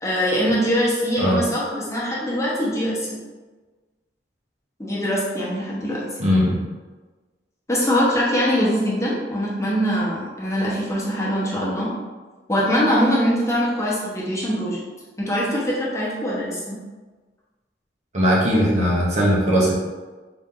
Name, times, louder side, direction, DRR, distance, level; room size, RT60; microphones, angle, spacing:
voice 1, 0.0-3.2 4.8-6.0 7.7-11.9 12.5-14.8 15.2-16.8, equal, 15° left, -6 dB, 0.9 m, -22 dB
voice 2, 6.2-6.6 18.1-19.7, equal, 40° right, -4 dB, 0.8 m, -19 dB
4.0 x 2.7 x 3.7 m, 1.3 s
head